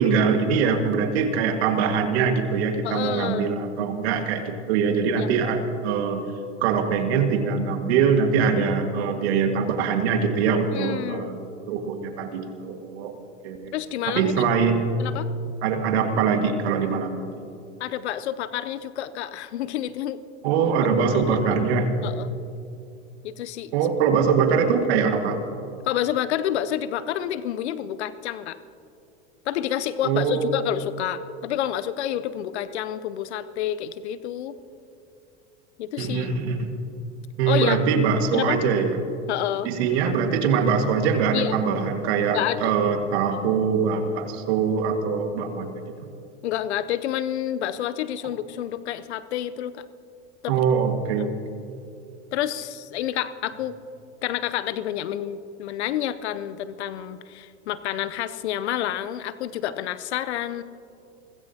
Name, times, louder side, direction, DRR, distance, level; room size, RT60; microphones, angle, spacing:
voice 1, 0.0-6.2 6.6-11.4 11.7-13.7 14.1-15.0 15.6-17.3 20.4-21.9 23.7-25.4 30.0-30.6 36.0-36.7 37.4-39.0 39.6-45.8 50.5-51.3 51.6-51.7, right 6 dB, 65° right, 5 dB, 1.9 m, -23 dB
voice 2, 2.8-3.5 5.2-5.3 10.7-11.3 13.7-14.5 15.0-15.3 17.8-20.2 21.0-21.4 22.0-22.4 23.2-23.7 25.9-28.6 29.5-34.6 35.8-36.3 37.5-37.8 38.3-38.6 39.3-39.7 41.3-41.6 42.3-42.8 46.4-49.8 50.4-50.6 51.2-51.3 52.3-53.8 54.2-60.6, left 11 dB, 70° left, 14 dB, 0.8 m, -29 dB
29.0 x 15.5 x 2.9 m, 2.6 s
hypercardioid pair, 90°, 34 cm